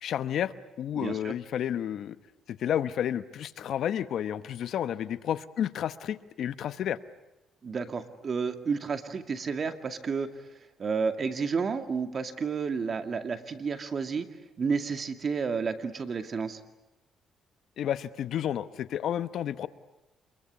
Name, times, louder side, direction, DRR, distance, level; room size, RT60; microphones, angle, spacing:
voice 1, 0.0-2.2 2.5-7.0 17.8-19.7, left 10 dB, 70° left, 13 dB, 1.0 m, -31 dB
voice 2, 1.0-1.3 7.6-10.3 10.8-14.3 14.6-16.6, right 5 dB, 45° right, 7 dB, 2.3 m, -31 dB
26.5 x 22.5 x 9.7 m, 0.97 s
cardioid pair, 90°, 0 cm